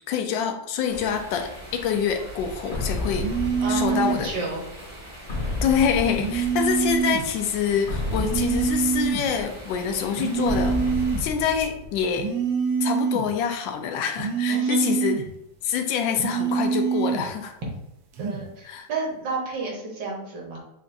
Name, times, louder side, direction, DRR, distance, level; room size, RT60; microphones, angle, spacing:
voice 1, 0.1-3.3 3.7-4.3 5.6-10.8 11.2-12.3 12.8-15.2 15.6-17.6 18.6-18.9, left 7 dB, 80° left, 5 dB, 1.3 m, -26 dB
sound 1, 0.9-11.2, right 1 dB, 30° right, 0.5 m, -41 dB
sound 2, 2.7-4.5 5.3-7.0 7.9-9.7 10.5-12.2, left 2 dB, 45° left, 1.1 m, -31 dB
sound 3, 3.2-4.3 6.2-7.3 8.2-9.3 10.2-11.3 12.1-13.3 14.2-15.3 16.1-17.3 18.1-18.5, right 6 dB, 80° right, 1.5 m, -25 dB
voice 2, 3.6-4.6 14.5-14.9 18.2-20.6, right 2 dB, 65° right, -2 dB, 1.8 m, -31 dB
6.8 x 2.5 x 2.6 m, 0.87 s
omnidirectional pair, 2.1 m